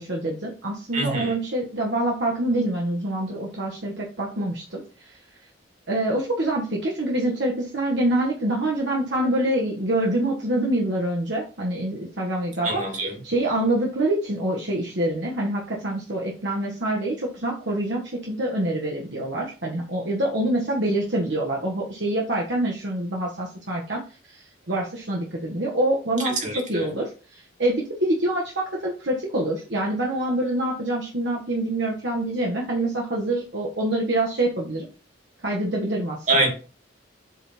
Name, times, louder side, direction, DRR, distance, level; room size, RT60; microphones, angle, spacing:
voice 1, 0.0-5.2 5.9-12.8 13.2-26.4 26.7-34.8 35.4-36.3, right 1 dB, 65° right, -3 dB, 1.6 m, -26 dB
voice 2, 0.9-1.3 12.6-13.1 26.2-26.9 36.3-36.5, right 2 dB, 40° right, 0 dB, 2.7 m, -25 dB
8.1 x 3.8 x 4.4 m, 0.35 s
head